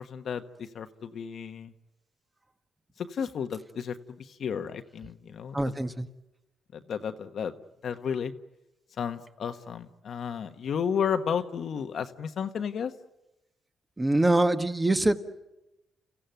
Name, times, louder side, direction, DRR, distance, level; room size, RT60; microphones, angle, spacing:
voice 1, 0.0-1.7 3.0-5.6 6.7-7.5 7.8-8.3 9.0-12.9, left 7 dB, 65° left, 8 dB, 1.3 m, -33 dB
voice 2, 5.5-6.1 14.0-15.2, right 2 dB, 15° right, 7 dB, 1.6 m, -24 dB
30.0 x 15.5 x 9.2 m, 0.96 s
cardioid pair, 85°, 0 cm